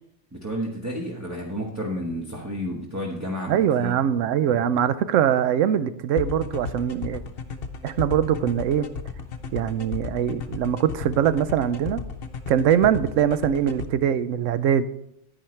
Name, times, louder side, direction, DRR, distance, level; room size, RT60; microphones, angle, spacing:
voice 1, 0.3-3.9, equal, 15° right, -2 dB, 1.1 m, -31 dB
voice 2, 3.5-7.2 7.8-8.9 9.5-12.0 12.5-14.8, right 9 dB, 80° right, 14 dB, 0.9 m, -22 dB
sound 1, 6.2-13.9, left 5 dB, 55° left, 0.9 m, -33 dB
10.0 x 9.9 x 3.2 m, 0.79 s
omnidirectional pair, 1.3 m